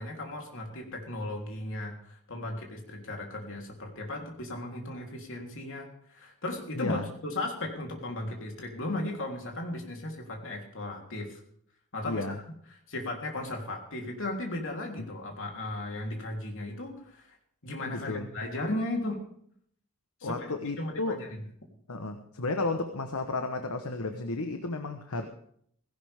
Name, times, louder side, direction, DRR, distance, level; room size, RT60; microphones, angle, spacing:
voice 1, 0.0-11.4 11.9-12.4 12.9-17.3 17.6-19.2 20.2-20.5 20.8-21.4, left 1 dB, 60° left, 1 dB, 3.5 m, -36 dB
voice 2, 6.7-7.0 12.0-12.4 17.9-18.3 20.2-21.2 21.9-25.3, left 2 dB, 90° left, 7 dB, 1.2 m, -33 dB
17.0 x 17.0 x 3.6 m, 0.65 s
head